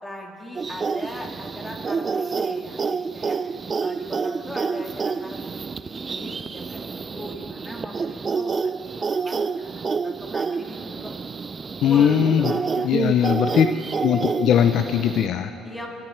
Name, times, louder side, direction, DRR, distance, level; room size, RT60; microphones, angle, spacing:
voice 1, 0.0-3.4 3.8-8.7 9.0-11.1 11.8-13.7 15.6-15.9, left 1 dB, 10° left, -1 dB, 3.0 m, -39 dB
sound 1, 0.5-15.3, right 5 dB, 30° right, 0.3 m, -28 dB
voice 2, 11.8-12.5 12.8-13.7 14.0-15.5, left 9 dB, 65° left, 8 dB, 0.6 m, -19 dB
26.5 x 10.5 x 4.7 m, 2.7 s
cardioid pair, 100°, 0 cm